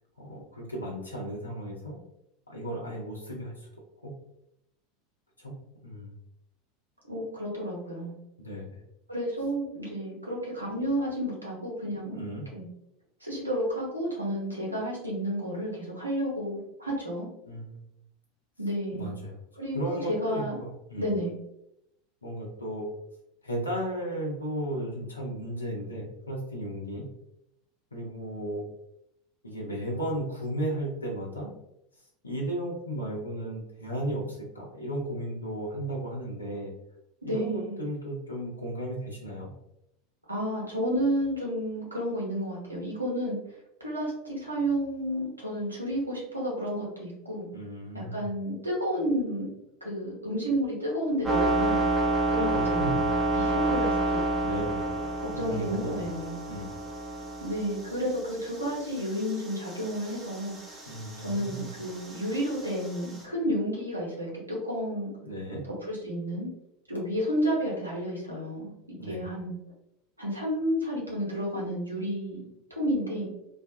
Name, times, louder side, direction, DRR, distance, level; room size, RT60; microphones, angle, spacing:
voice 1, 0.2-2.0 2.5-3.7 4.0-4.1 5.4-5.5 5.8-6.2 8.4-8.8 12.1-12.4 17.5-17.8 18.9-19.4 19.7-21.1 22.2-22.8 23.4-27.0 27.9-28.7 29.4-31.5 32.2-36.7 37.2-39.5 47.5-48.3 52.4-53.1 54.4-56.0 56.5-56.7 60.9-61.6 65.2-65.6 69.0-69.2, right 1 dB, 85° left, -2 dB, 0.7 m, -35 dB
voice 2, 7.1-8.1 9.1-12.2 12.5-12.7 13.2-17.3 18.6-19.1 19.6-20.6 21.0-21.3 37.2-37.8 40.3-43.4 43.8-47.5 47.9-49.5 49.8-51.9 52.3-54.2 55.2-56.4 57.4-60.8 61.2-65.1 65.8-66.5 66.9-68.7 69.0-69.6 70.2-73.3, equal, 85° right, -4 dB, 0.8 m, -31 dB
sound 1, 51.2-63.2, right 2 dB, 15° right, 0.8 m, -30 dB
2.3 x 2.2 x 2.7 m, 0.82 s
figure-of-eight pair, 80°, 0 cm